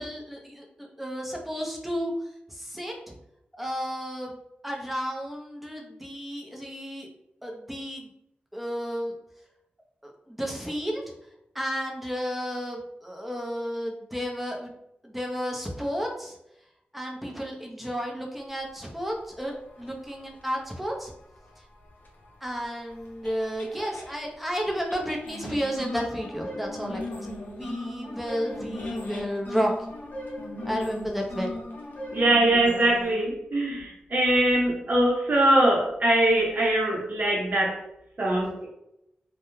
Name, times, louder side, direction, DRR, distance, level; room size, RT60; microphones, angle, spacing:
voice 1, 0.0-2.1 2.5-3.1 3.5-4.4 4.6-7.1 7.4-8.1 8.5-9.1 10.0-11.0 11.5-14.7 15.0-16.4 16.9-21.1 22.4-29.7 30.7-31.5, equal, 5° right, 0 dB, 0.7 m, -32 dB
sound 1, 19.6-24.1 24.9-33.1, left 1 dB, 55° left, 0.8 m, -37 dB
voice 2, 32.1-37.8 38.2-38.7, right 1 dB, 50° right, -3 dB, 0.8 m, -22 dB
2.3 x 2.2 x 3.1 m, 0.82 s
cardioid pair, 55°, 4 cm